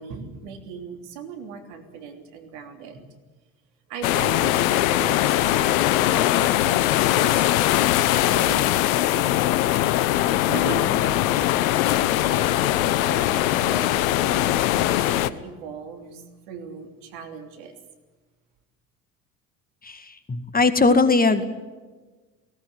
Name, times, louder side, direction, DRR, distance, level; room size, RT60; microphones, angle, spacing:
voice 1, 0.0-3.0 3.9-7.4 8.0-9.5 10.5-11.2 12.2-14.7 15.0-17.8, right 6 dB, 70° right, 6 dB, 3.3 m, -38 dB
sound 1, 4.0-15.3, left 14 dB, 70° left, 1.0 m, -21 dB
voice 2, 19.8-21.4, left 3 dB, 20° left, 10 dB, 2.0 m, -20 dB
18.5 x 18.0 x 9.9 m, 1.3 s
hypercardioid pair, 60°, 42 cm